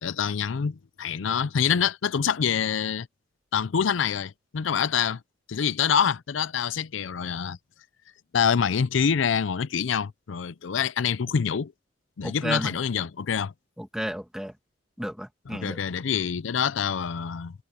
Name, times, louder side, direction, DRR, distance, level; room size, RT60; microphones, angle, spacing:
voice 1, 0.0-3.1 3.5-5.2 5.5-7.6 8.3-11.7 12.2-13.5 15.5-17.5, left 7 dB, 80° left, 0.5 m, -26 dB
voice 2, 12.2-12.8 13.8-14.5 15.0-15.8, equal, 5° right, 2.0 m, -32 dB
head